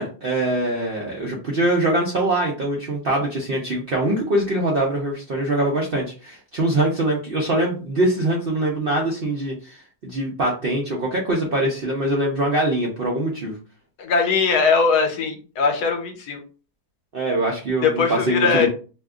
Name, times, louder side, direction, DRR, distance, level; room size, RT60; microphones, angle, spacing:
voice 1, 0.0-13.6 17.1-18.7, right 1 dB, 60° right, -2 dB, 0.5 m, -23 dB
voice 2, 14.0-16.4 17.8-18.7, left 5 dB, 75° left, 4 dB, 1.3 m, -20 dB
2.8 x 2.3 x 3.5 m, 0.36 s
omnidirectional pair, 1.7 m